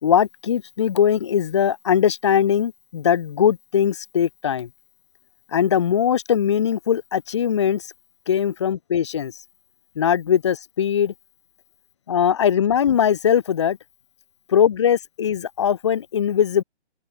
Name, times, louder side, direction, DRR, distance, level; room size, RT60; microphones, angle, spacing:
voice 1, 0.0-4.7 5.5-7.9 8.3-9.3 10.0-11.1 12.1-13.8 14.5-16.6, left 8 dB, 25° left, 0.9 m, -20 dB
open air
hypercardioid pair, 165°, 34 cm